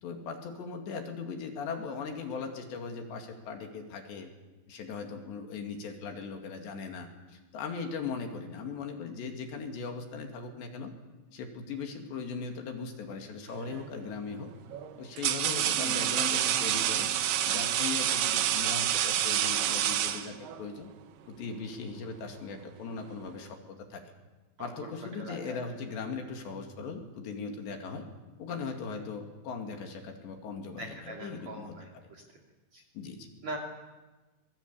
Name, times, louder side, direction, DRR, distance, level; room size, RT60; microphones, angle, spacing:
voice 1, 0.0-4.3 4.7-10.9 11.3-14.5 15.0-17.1 17.5-20.9 21.3-24.0 24.6-28.1 28.4-31.8 32.9-33.3, left 5 dB, 65° left, 3 dB, 4.3 m, -39 dB
sound 1, 13.6-13.9 14.7-20.7, right 11 dB, 70° right, 2.6 m, -28 dB
sound 2, 15.8-18.2, right 3 dB, 15° right, 2.9 m, -45 dB
voice 2, 24.6-24.9 25.2-25.6 30.8-32.2 32.7-32.8 33.4-33.6, right 1 dB, 40° right, 2 dB, 3.2 m, -42 dB
26.0 x 20.5 x 8.6 m, 1.2 s
omnidirectional pair, 5.8 m